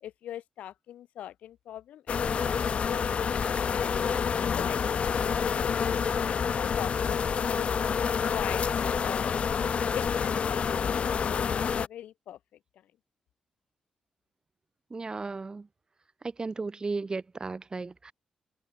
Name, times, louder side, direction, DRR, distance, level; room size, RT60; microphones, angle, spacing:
voice 1, 0.0-2.3 2.6-3.9 4.5-9.4 9.9-12.4, left 11 dB, 80° left, 1.3 m, -42 dB
sound 1, 2.1-11.9, left 6 dB, 60° left, 0.5 m, -28 dB
voice 2, 14.9-15.7 16.4-18.1, right 3 dB, 35° right, 0.7 m, -35 dB
supercardioid pair, 50°, 2 cm